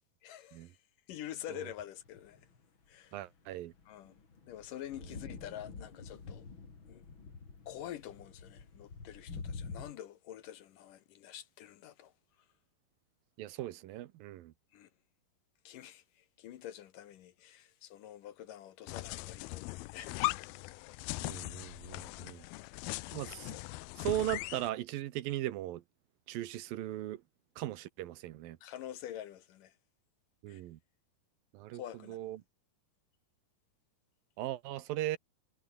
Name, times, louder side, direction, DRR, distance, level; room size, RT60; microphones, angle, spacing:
voice 1, 0.2-0.8 1.1-2.4 2.9-3.2 3.9-4.1 4.5-6.5 6.9-7.0 7.7-12.1 14.7-14.9 15.6-20.7 22.5-22.7 28.6-29.8 30.5-30.6 31.7-32.2, left 11 dB, 65° left, 2.6 m, -47 dB
sound 1, 2.1-2.6 3.5-9.9, left 4 dB, 35° left, 3.8 m, -47 dB
voice 2, 3.1-3.7 13.4-14.5 21.2-22.5 23.1-23.6 24.0-25.8 26.3-27.2 27.6-28.6 30.4-30.8 31.5-31.8 32.1-32.4 34.4-35.2, right 14 dB, 75° right, 2.6 m, -38 dB
sound 2, 18.9-24.7, left 20 dB, 85° left, 2.5 m, -39 dB
omnidirectional pair, 4.4 m